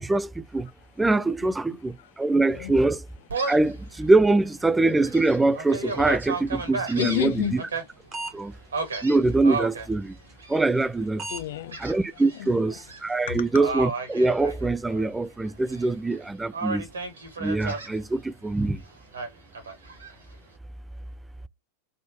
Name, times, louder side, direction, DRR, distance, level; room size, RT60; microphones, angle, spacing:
voice 1, 0.0-0.7 1.0-3.0 3.5-7.3 8.3-8.5 9.0-10.1 10.5-11.2 11.8-16.8 17.4-18.8, right 2 dB, 10° right, 0.3 m, -23 dB
voice 2, 0.8-4.6 6.4-7.8 11.3-13.6, left 13 dB, 55° left, 0.7 m, -35 dB
Gull seagull, 3.3-3.7 4.2-4.3 4.9-7.8 8.7-9.9 10.4-10.9 11.7-12.4 12.7-13.0 13.5-15.1 15.4-16.2 16.5-17.9 19.1-20.1, right 4 dB, 70° right, 1.6 m, -33 dB
sound 1, 7.4-8.4 8.8-8.9 9.3-9.4 9.8-9.9 10.3-10.4 10.8-10.9 11.2-11.5 11.8-12.0 12.3-12.5 12.8-13.0 13.3-13.5, right 3 dB, 25° right, 1.4 m, -36 dB
4.1 x 3.6 x 2.7 m
figure-of-eight pair, 90°, 0 cm